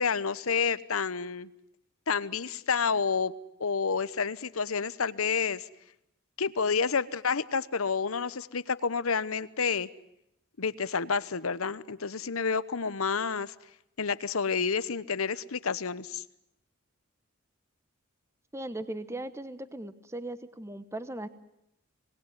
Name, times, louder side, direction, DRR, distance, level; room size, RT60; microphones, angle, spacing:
voice 1, 0.0-1.5 2.1-3.3 3.6-5.7 6.4-9.9 10.6-13.5 14.0-16.2, left 5 dB, 75° left, 16 dB, 1.0 m, -29 dB
voice 2, 18.5-21.3, right 1 dB, 15° right, 13 dB, 1.0 m, -38 dB
26.5 x 20.0 x 9.7 m, 0.81 s
head